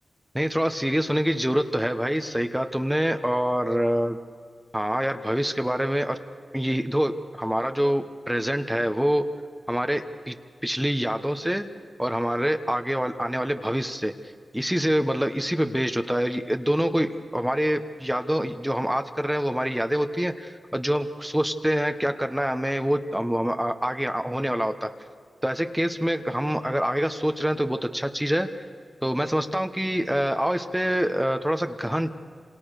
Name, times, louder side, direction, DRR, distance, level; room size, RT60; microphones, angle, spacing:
voice 1, 0.3-4.2 4.7-6.2 6.5-9.2 9.7-10.3 10.6-11.7 12.0-14.1 14.5-24.9 25.4-28.5 29.0-32.1, equal, 5° right, 7 dB, 1.3 m, -25 dB
28.0 x 27.5 x 6.7 m, 2.1 s
wide cardioid pair, 75°, 0 cm